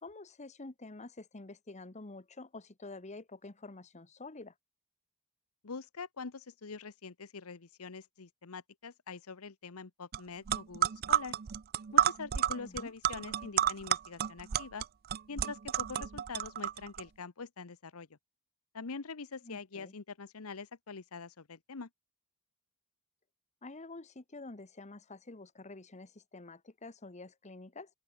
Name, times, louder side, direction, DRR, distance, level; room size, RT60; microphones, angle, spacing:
voice 1, 0.0-4.5 12.6-12.9 19.4-19.9 23.6-27.9, left 2 dB, 30° left, 1.2 m, -48 dB
voice 2, 5.6-11.4 11.9-14.8 15.3-18.2 18.7-21.9, left 4 dB, 70° left, 1.0 m, -44 dB
sound 1, 10.1-10.2 10.5-17.0, right 10 dB, 45° right, 0.4 m, -31 dB
open air
head